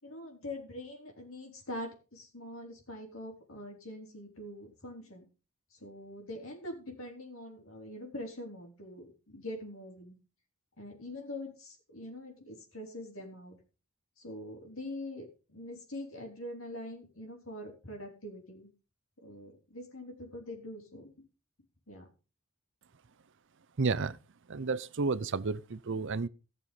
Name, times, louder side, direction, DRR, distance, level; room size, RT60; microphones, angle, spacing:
voice 1, 0.0-5.2 5.8-10.2 10.8-13.6 14.2-18.7 19.2-21.1 21.9-22.1, left 1 dB, 65° left, 4.5 m, -44 dB
voice 2, 23.8-24.2 24.5-26.3, right 4 dB, 60° right, 0.6 m, -31 dB
16.0 x 6.9 x 5.5 m
head